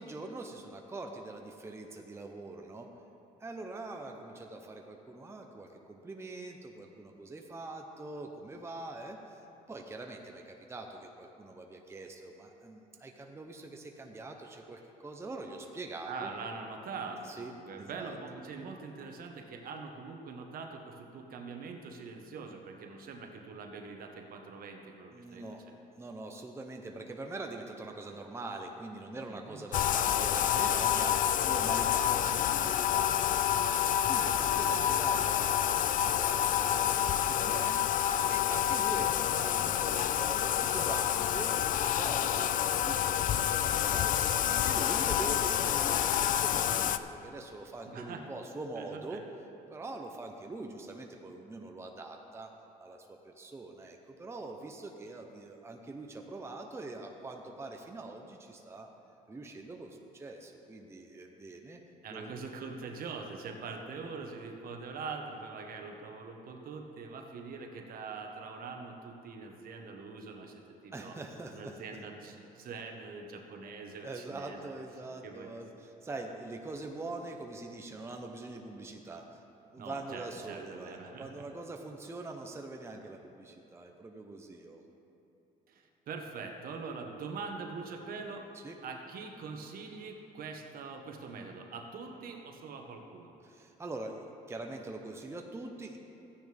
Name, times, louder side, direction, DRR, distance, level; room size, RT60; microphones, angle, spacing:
voice 1, 0.0-2.9 3.4-9.4 9.7-16.3 17.2-17.5 17.8-18.2 25.1-25.6 26.0-33.4 34.1-35.7 36.0-37.8 38.3-41.5 42.0-49.2 49.7-52.5 52.8-58.9 59.3-61.8 62.1-62.3 70.9-71.8 74.0-79.4 79.7-84.8 88.6-88.7 93.4-96.0, right 2 dB, 15° right, 2 dB, 0.8 m, -43 dB
voice 2, 16.0-25.5 29.3-29.7 47.9-48.2 48.8-49.2 62.0-71.2 71.5-74.7 75.2-75.5 79.8-81.4 85.7-88.5 88.8-93.3, right 4 dB, 60° right, 3 dB, 1.3 m, -43 dB
Bathtub (filling or washing), 29.7-47.0, left 10 dB, 50° left, 0.4 m, -28 dB
14.5 x 9.6 x 3.5 m, 2.9 s
cardioid pair, 110°, 17 cm